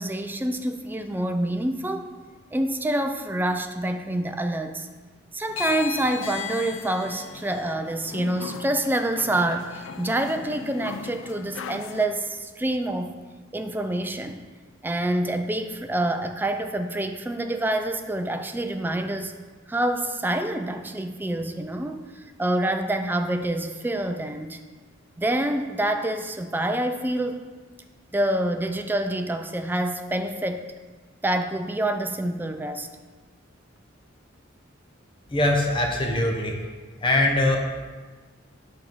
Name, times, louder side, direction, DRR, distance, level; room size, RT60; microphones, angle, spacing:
voice 1, 0.0-2.1 2.5-4.9 5.3-13.2 13.5-14.4 14.8-19.3 19.7-22.0 22.4-24.6 25.2-27.4 28.1-30.7 31.2-32.9, right 1 dB, 10° right, 7 dB, 0.3 m, -27 dB
sound 1, 5.5-12.0, left 7 dB, 70° left, 0.4 m, -36 dB
voice 2, 35.3-36.6 37.0-37.6, left 1 dB, 25° left, 0 dB, 0.8 m, -22 dB
7.1 x 3.6 x 6.0 m, 1.4 s
head